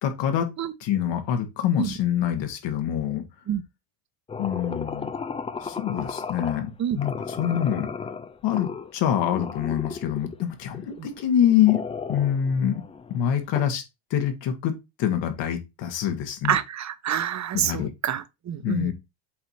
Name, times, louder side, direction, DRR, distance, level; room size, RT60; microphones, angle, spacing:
voice 1, 0.0-0.5 0.8-3.2 4.4-5.1 5.6-7.1 7.4-7.9 8.4-11.8 12.1-12.8 13.1-13.8 14.1-16.6 17.5-17.9 18.6-18.9, left 10 dB, 60° left, 2.0 m, -25 dB
sound 1, 4.3-6.7 7.0-8.9 9.3-10.4 10.7-13.6, left 5 dB, 15° left, 0.4 m, -35 dB
voice 2, 16.4-18.9, right 10 dB, 35° right, 0.9 m, -27 dB
7.8 x 2.9 x 5.6 m
supercardioid pair, 90°, 48 cm